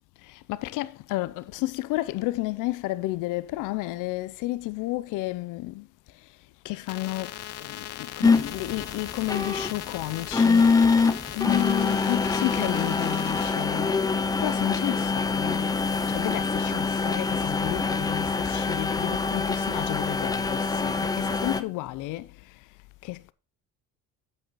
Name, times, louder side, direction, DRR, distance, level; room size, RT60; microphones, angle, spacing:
voice 1, 0.2-5.9 6.6-11.0 11.3-14.1 14.4-15.8 16.1-22.5 23.0-23.3, left 18 dB, 85° left, 0.7 m, -32 dB
sound 1, 6.9-13.5, left 12 dB, 55° left, 0.8 m, -39 dB
sound 2, 8.2-21.6, left 4 dB, 10° left, 0.6 m, -25 dB
8.8 x 7.8 x 4.1 m
cardioid pair, 145°, 30 cm